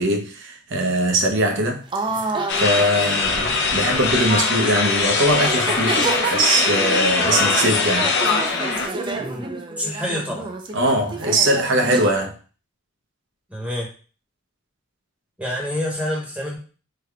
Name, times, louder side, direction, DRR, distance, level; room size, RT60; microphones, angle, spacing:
voice 1, 0.0-1.8 2.1-8.1 10.7-12.3, right 1 dB, 60° right, 0.7 m, -21 dB
sound 1, 1.9-4.4 5.0-5.1 5.4-12.1, right 3 dB, 25° right, 0.3 m, -29 dB
sound 2, 2.5-8.9, left 4 dB, 55° left, 0.6 m, -21 dB
voice 2, 9.2-10.5 13.5-13.9 15.4-16.6, equal, 5° right, 1.0 m, -27 dB
3.4 x 2.2 x 3.5 m
head